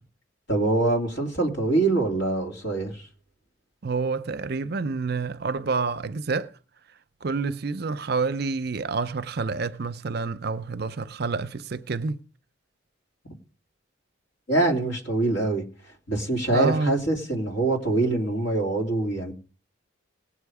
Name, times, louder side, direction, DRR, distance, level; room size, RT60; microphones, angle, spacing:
voice 1, 0.5-3.0 14.5-15.6 16.1-19.3, right 2 dB, 60° left, 2.7 m, -24 dB
voice 2, 3.8-6.5 7.2-12.2 16.5-17.0, right 4 dB, 50° right, 0.6 m, -28 dB
18.5 x 7.4 x 4.8 m
head